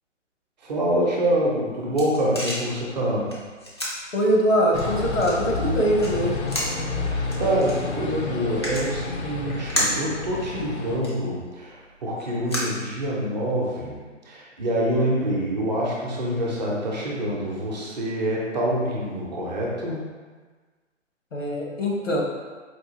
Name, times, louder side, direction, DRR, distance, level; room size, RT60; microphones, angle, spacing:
voice 1, 0.6-3.3 6.9-14.0 14.2-20.1, right 1 dB, 35° right, -4 dB, 0.8 m, -26 dB
sound 1, 1.4-13.5, equal, 25° left, 0.4 m, -34 dB
voice 2, 4.1-6.3 21.3-22.2, equal, 85° left, -2 dB, 1.0 m, -22 dB
sound 2, 4.7-11.0, left 3 dB, 65° left, 0.7 m, -30 dB
4.4 x 2.4 x 3.0 m, 1.4 s
figure-of-eight pair, 135°, 37 cm